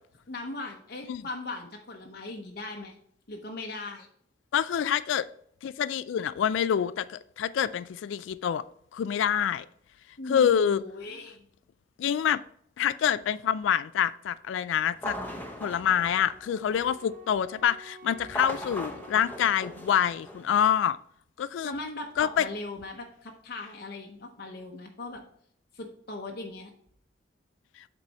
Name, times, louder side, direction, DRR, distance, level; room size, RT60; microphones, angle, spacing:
voice 1, 0.3-3.0 3.3-4.1 10.2-11.4 21.6-25.2 25.7-26.7, left 2 dB, 55° left, 0.8 m, -39 dB
voice 2, 4.5-5.3 5.6-8.6 8.9-9.7 10.3-10.8 12.0-12.4 12.8-15.2 15.6-21.0 21.4-21.8 22.2-22.5, left 9 dB, 85° left, 0.3 m, -26 dB
sound 1, 14.9-17.1 18.2-20.7, left 1 dB, 10° left, 0.8 m, -39 dB
Wind instrument woodwind instrument, 15.9-20.7, right 3 dB, 35° right, 1.5 m, -51 dB
8.0 x 4.1 x 4.1 m
head